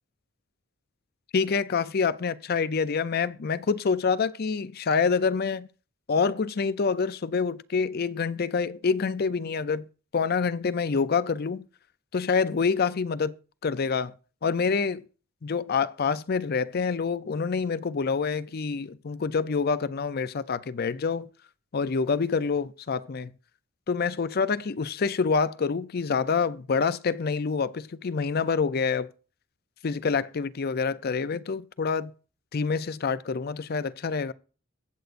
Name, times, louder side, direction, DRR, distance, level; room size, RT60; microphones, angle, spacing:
voice 1, 1.3-5.7 6.1-9.9 10.1-11.6 12.1-13.4 13.6-14.1 14.4-15.0 15.4-21.3 21.7-23.3 23.9-29.1 29.8-32.1 32.5-34.3, left 5 dB, 45° left, 0.5 m, -27 dB
22.5 x 7.9 x 2.6 m
head